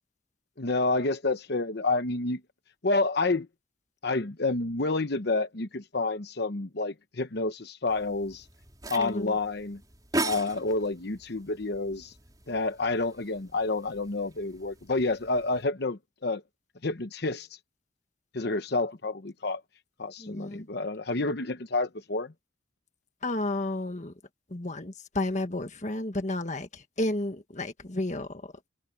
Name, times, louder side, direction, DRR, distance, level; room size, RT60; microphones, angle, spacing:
voice 1, 0.6-2.4 2.8-3.5 4.0-8.4 8.9-9.8 10.2-12.1 12.5-16.4 16.8-17.5 18.3-19.6 20.0-22.3, left 3 dB, 55° left, 1.0 m, -29 dB
sound 1, 7.9-15.7, right 2 dB, 20° right, 4.4 m, -39 dB
voice 2, 9.0-9.4 20.2-20.7 23.2-24.1 24.5-28.4, left 1 dB, 40° left, 1.6 m, -32 dB
head